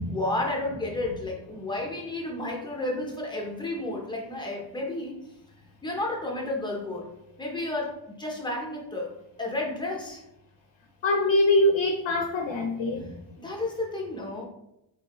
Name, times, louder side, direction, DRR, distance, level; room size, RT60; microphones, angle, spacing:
voice 1, 0.1-5.2 5.8-10.2 13.4-14.4, left 2 dB, 10° left, -1 dB, 0.6 m, -32 dB
voice 2, 11.0-13.1, left 1 dB, 90° left, 3 dB, 0.6 m, -23 dB
3.3 x 2.6 x 2.9 m, 0.84 s
wide cardioid pair, 155°, 44 cm